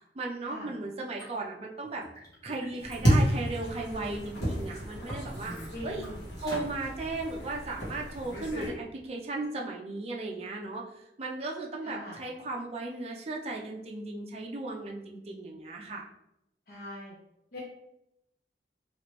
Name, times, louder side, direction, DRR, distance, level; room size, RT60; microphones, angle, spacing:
voice 1, 0.1-2.0 2.4-5.5 5.8-6.1 6.4-16.0, right 2 dB, 35° right, -1 dB, 0.4 m, -36 dB
Liquid, 1.2-1.3 1.8-4.2 4.7-6.1 6.5-6.7, equal, 20° left, 0.9 m, -46 dB
sound 1, 2.8-8.7, equal, 80° left, 1.1 m, -31 dB
voice 2, 5.7-6.2 11.8-12.2 16.7-17.1 17.5-17.6, left 1 dB, 55° left, -6 dB, 0.6 m, -42 dB
3.0 x 2.5 x 3.0 m, 0.83 s
head